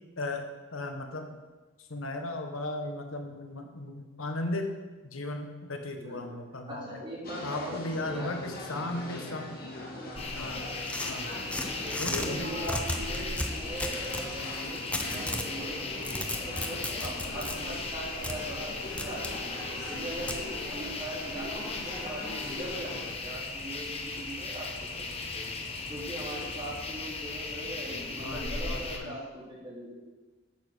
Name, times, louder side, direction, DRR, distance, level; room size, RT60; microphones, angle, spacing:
voice 1, 0.2-1.3 1.9-4.8 5.1-7.0 7.4-9.5 10.3-10.7 11.0-11.3 11.9-12.5 28.2-29.1, left 2 dB, 85° left, 5 dB, 1.2 m, -36 dB
voice 2, 6.0-6.3 6.7-8.4 8.7-9.0 11.8-19.6 19.9-25.5 25.8-30.0, right 1 dB, 25° right, -5 dB, 3.2 m, -40 dB
sound 1, 7.2-23.1, left 1 dB, 50° left, 2.2 m, -41 dB
sound 2, 10.2-29.0, left 3 dB, 30° left, 1.1 m, -37 dB
sound 3, 10.9-12.3 12.6-14.3 14.9-15.5 15.9-17.6 18.2-18.4 19.0-19.3 20.3-20.4, left 1 dB, 5° left, 0.8 m, -34 dB
8.6 x 7.5 x 6.3 m, 1.2 s
head